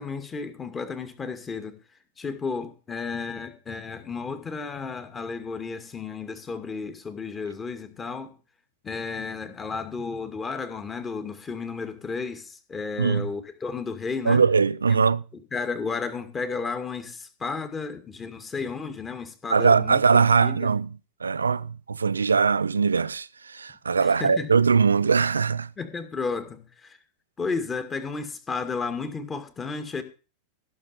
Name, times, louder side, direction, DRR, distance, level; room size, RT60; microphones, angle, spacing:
voice 1, 0.0-1.8 2.2-8.3 8.8-14.4 15.5-20.7 24.0-24.5 25.8-27.0 27.4-30.0, left 4 dB, 20° left, 2.3 m, -33 dB
voice 2, 13.0-13.3 14.3-15.2 19.5-20.9 21.2-25.7, right 5 dB, 75° right, 0.6 m, -21 dB
16.0 x 6.9 x 6.8 m
figure-of-eight pair, 90°, 0 cm